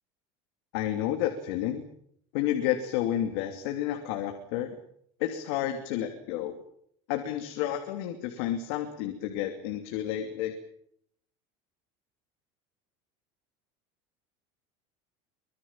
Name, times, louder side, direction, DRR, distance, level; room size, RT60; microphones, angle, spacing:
voice 1, 0.7-1.8 2.3-4.7 5.2-6.5 7.1-10.5, left 11 dB, 60° left, 5 dB, 2.9 m, -30 dB
24.5 x 22.0 x 7.5 m, 0.68 s
cardioid pair, 180°, 15 cm